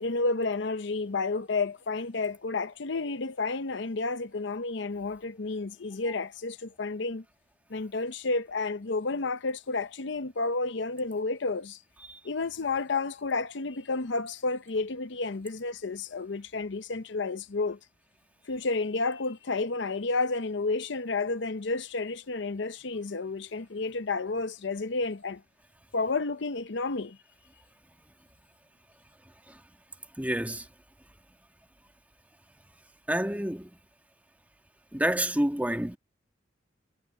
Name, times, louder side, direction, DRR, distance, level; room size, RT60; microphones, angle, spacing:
voice 1, 0.0-7.2 7.7-11.8 12.2-17.8 18.5-25.4 25.9-27.2, left 3 dB, 70° left, 0.7 m, -31 dB
voice 2, 30.2-30.7 33.1-33.7 34.9-36.0, right 1 dB, 10° right, 1.8 m, -28 dB
head